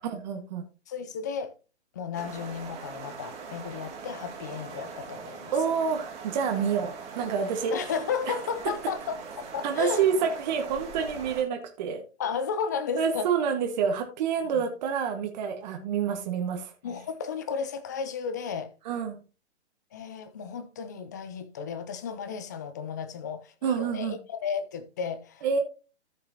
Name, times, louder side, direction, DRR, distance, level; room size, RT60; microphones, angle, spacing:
voice 1, 0.1-0.6 5.5-7.7 9.6-12.0 13.0-16.7 18.8-19.2 23.6-24.2 25.4-25.6, right 7 dB, 40° right, 1.5 m, -28 dB
voice 2, 0.9-1.5 1.9-5.5 7.7-10.1 12.2-13.3 14.5-14.6 16.1-16.2 16.8-18.7 19.9-25.5, left 6 dB, 15° left, 0.4 m, -33 dB
sound 1, 2.1-11.4, right 5 dB, 20° right, 2.5 m, -42 dB
14.0 x 5.8 x 2.8 m
hypercardioid pair, 135°, 35 cm